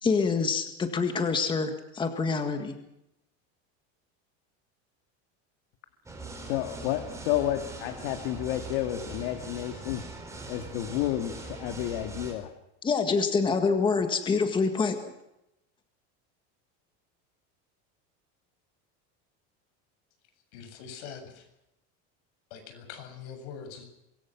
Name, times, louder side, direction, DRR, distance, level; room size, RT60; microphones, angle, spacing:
voice 1, 0.0-2.8 12.8-15.0, left 4 dB, 15° left, 6 dB, 1.8 m, -26 dB
sound 1, 6.1-12.3, right 3 dB, 10° right, 4.8 m, -41 dB
voice 2, 6.4-10.0 10.5-12.5, left 13 dB, 65° left, 7 dB, 2.2 m, -31 dB
voice 3, 20.5-21.5 22.5-23.8, left 7 dB, 85° left, 6 dB, 7.8 m, -43 dB
25.0 x 23.0 x 6.1 m, 0.86 s
cardioid pair, 175°, 34 cm